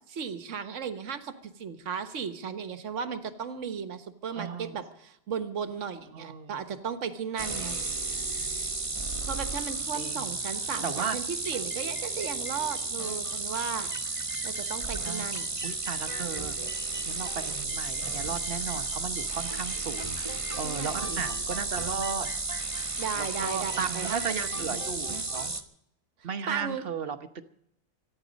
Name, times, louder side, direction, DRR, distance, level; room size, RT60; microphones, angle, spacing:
voice 1, 0.1-7.8 9.3-13.9 14.4-15.5 20.6-21.2 23.0-24.2 24.6-24.8 26.5-26.8, right 6 dB, 65° right, 8 dB, 1.6 m, -35 dB
voice 2, 4.3-4.8 6.1-6.6 8.4-8.6 9.9-10.4 10.8-11.2 15.0-15.3 15.6-16.6 17.0-22.3 23.1-25.5 26.2-27.2, right 6 dB, 45° right, 9 dB, 1.2 m, -35 dB
sound 1, 7.4-25.6, right 3 dB, 25° right, 1.2 m, -33 dB
25.0 x 10.5 x 5.2 m, 0.75 s
omnidirectional pair, 1.4 m